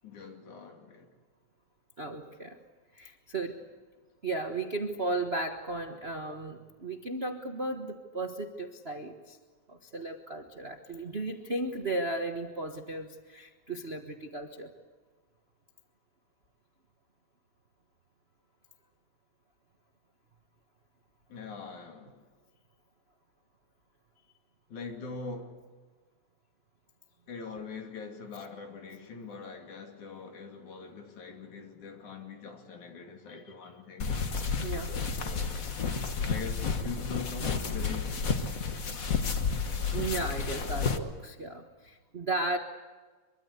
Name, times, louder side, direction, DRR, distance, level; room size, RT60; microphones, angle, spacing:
voice 1, 0.0-1.1 21.3-22.2 24.7-25.5 27.3-34.2 34.8-35.6 36.2-38.3, left 4 dB, 75° left, 3 dB, 4.1 m, -42 dB
voice 2, 2.0-2.6 2.9-3.6 4.2-9.4 9.7-14.7 33.3-33.7 34.6-34.9 39.9-42.6, right 2 dB, 50° right, 3 dB, 0.7 m, -35 dB
sound 1, 34.0-41.0, left 5 dB, 45° left, 1.0 m, -31 dB
24.5 x 23.5 x 8.3 m, 1.4 s
omnidirectional pair, 3.5 m